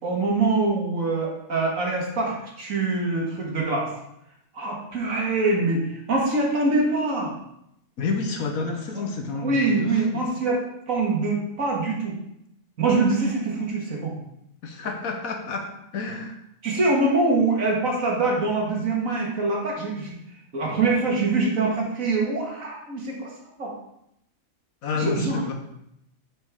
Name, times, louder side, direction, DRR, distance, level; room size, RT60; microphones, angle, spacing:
voice 1, 0.0-3.9 4.5-7.3 9.4-10.6 10.9-12.2 12.8-14.1 16.6-20.1 20.5-23.3 23.6-23.7 24.9-25.4, right 3 dB, 70° right, -2 dB, 2.0 m, -24 dB
voice 2, 8.0-10.2 14.6-16.4 24.8-25.5, left 4 dB, 80° left, 3 dB, 1.5 m, -29 dB
7.2 x 6.1 x 3.6 m, 0.79 s
omnidirectional pair, 1.5 m